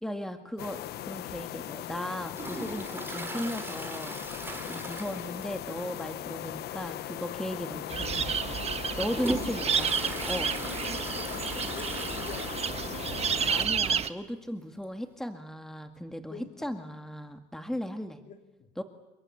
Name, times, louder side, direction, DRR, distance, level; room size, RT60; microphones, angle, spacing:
voice 1, 0.0-8.6 9.0-9.9 10.3-10.5 13.5-18.2 18.8-18.9, equal, 5° left, 6 dB, 1.9 m, -36 dB
sound 1, 0.6-13.7, left 12 dB, 70° left, 1.0 m, -38 dB
Toilet flush, 2.3-5.8 6.0-6.1 6.6-6.7 7.5-7.6 8.2-13.1 13.4-13.5 13.7-13.8 14.8-14.9, right 2 dB, 15° right, 3.9 m, -40 dB
voice 2, 4.7-5.2 9.8-13.7 16.3-16.7 18.3-18.7, left 6 dB, 55° left, 4 dB, 4.1 m, -48 dB
sound 2, 7.9-14.1, right 7 dB, 40° right, 1.4 m, -31 dB
30.0 x 22.5 x 8.5 m, 1.0 s
cardioid pair, 110°, 17 cm